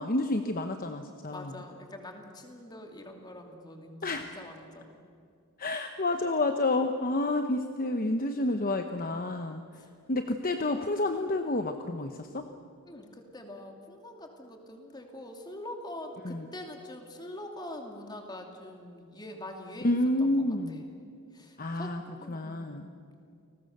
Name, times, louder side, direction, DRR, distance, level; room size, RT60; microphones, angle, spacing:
voice 1, 0.0-1.5 4.0-4.3 5.6-9.6 10.1-12.5 16.2-16.5 19.8-20.8 21.6-22.0 22.3-22.9, left 2 dB, 40° left, 6 dB, 1.0 m, -29 dB
voice 2, 1.3-5.0 9.7-9.9 12.8-20.8 21.3-22.9, left 1 dB, 20° left, 3 dB, 2.7 m, -44 dB
30.0 x 20.0 x 6.8 m, 2.4 s
head